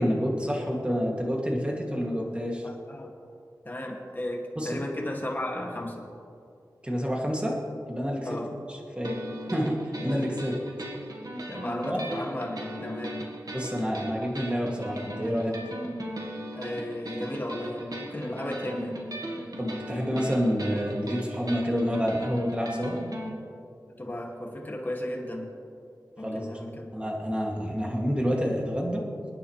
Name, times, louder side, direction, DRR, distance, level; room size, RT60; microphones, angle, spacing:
voice 1, 0.0-2.6 4.6-4.8 6.8-7.6 7.9-8.4 8.7-9.2 9.5-9.8 10.0-10.6 11.8-12.0 13.5-15.5 19.6-23.0 26.2-26.6 26.9-29.0, equal, 15° right, -2 dB, 2.6 m, -28 dB
voice 2, 2.6-3.1 3.6-6.0 8.2-8.5 11.5-13.3 13.8-13.9 16.5-19.0 24.0-25.5 26.2-26.9, left 1 dB, 25° left, -1 dB, 2.4 m, -34 dB
sound 1, 9.0-23.3, equal, 60° right, 1.7 m, -38 dB
28.0 x 9.6 x 3.4 m, 2.5 s
wide cardioid pair, 70°, 7 cm